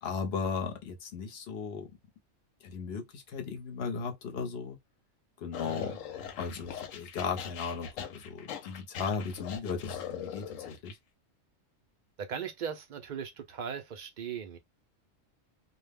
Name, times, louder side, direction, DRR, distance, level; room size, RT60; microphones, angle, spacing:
voice 1, 0.0-1.9 2.6-4.8 5.4-6.0 6.4-11.0, left 5 dB, 60° left, 0.8 m, -36 dB
sound 1, 5.5-10.9, left 8 dB, 85° left, 1.0 m, -41 dB
voice 2, 5.6-6.0 12.2-14.6, right 7 dB, 60° right, 0.5 m, -38 dB
2.3 x 2.1 x 3.3 m
omnidirectional pair, 1.3 m